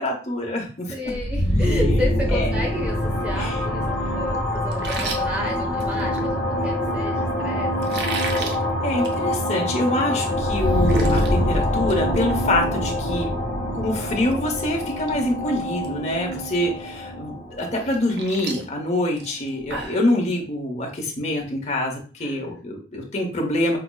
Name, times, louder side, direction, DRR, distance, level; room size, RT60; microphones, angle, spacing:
voice 1, 0.0-0.9 2.3-2.5 3.4-3.6 8.8-13.3 13.7-23.8, left 1 dB, 40° left, 0 dB, 0.9 m, -25 dB
voice 2, 0.9-8.0 16.1-16.2 22.2-22.6, left 1 dB, 5° right, -2 dB, 0.9 m, -32 dB
sound 1, 1.1-18.7, left 1 dB, 70° left, 1.1 m, -24 dB
sound 2, 4.7-6.3 7.8-8.6 8.9-9.2 9.5-9.6 10.1-10.2 10.5-11.3 11.7-12.0 12.3-12.4 14.3-14.4 14.8-15.1 15.4-15.9 16.3-16.4 17.7-20.0, right 3 dB, 65° right, 0.6 m, -33 dB
5.8 x 2.0 x 2.3 m, 0.38 s
head